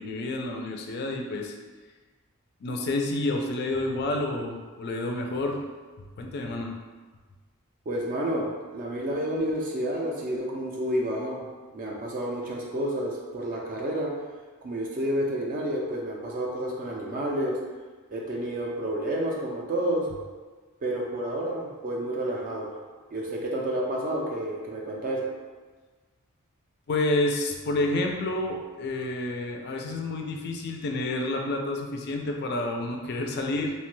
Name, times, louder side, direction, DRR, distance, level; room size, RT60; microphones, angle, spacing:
voice 1, 0.0-1.5 2.6-5.6 6.2-6.7 26.9-33.7, left 2 dB, 45° left, 2 dB, 0.3 m, -29 dB
voice 2, 7.9-11.5 11.7-14.1 14.6-17.6 18.1-20.1 20.8-22.7 23.1-25.3, right 1 dB, 40° right, -1 dB, 0.3 m, -30 dB
2.8 x 2.2 x 3.1 m, 1.4 s
head